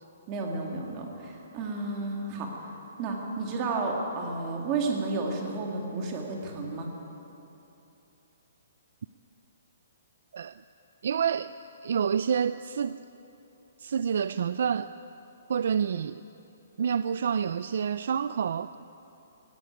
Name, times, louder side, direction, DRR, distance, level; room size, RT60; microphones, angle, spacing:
voice 1, 0.3-2.7 3.0-6.9, right 3 dB, 20° right, 1 dB, 2.2 m, -32 dB
voice 2, 11.0-11.5 11.8-13.0 13.8-14.9 15.5-16.2 16.8-18.7, right 7 dB, 50° right, 14 dB, 0.4 m, -28 dB
18.0 x 16.5 x 9.2 m, 3.0 s
hypercardioid pair, 180°, 0 cm